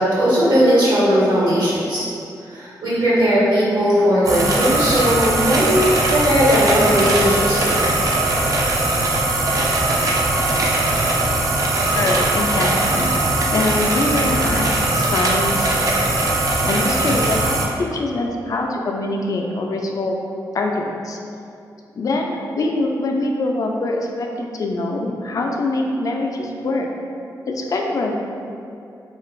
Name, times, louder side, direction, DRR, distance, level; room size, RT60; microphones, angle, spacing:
voice 1, 0.0-2.0 2.5-7.8, equal, 75° right, -9 dB, 1.1 m, -17 dB
sound 1, 4.2-17.7, right 2 dB, 50° right, 0.4 m, -20 dB
voice 2, 11.8-13.1 13.5-15.8 16.6-20.2 20.5-21.2 22.0-26.9 27.5-28.1, left 2 dB, 50° left, 1 dB, 0.3 m, -23 dB
2.5 x 2.3 x 3.1 m, 2.5 s
cardioid pair, 80°, 7 cm